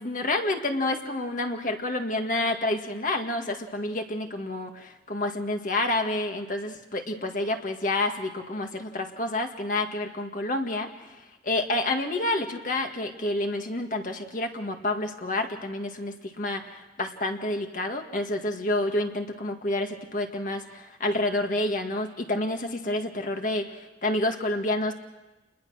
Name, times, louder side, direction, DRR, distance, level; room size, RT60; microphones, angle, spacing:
voice 1, 0.0-11.1 11.4-24.9, left 2 dB, 50° left, 4 dB, 1.9 m, -29 dB
29.0 x 21.0 x 6.4 m, 1.1 s
head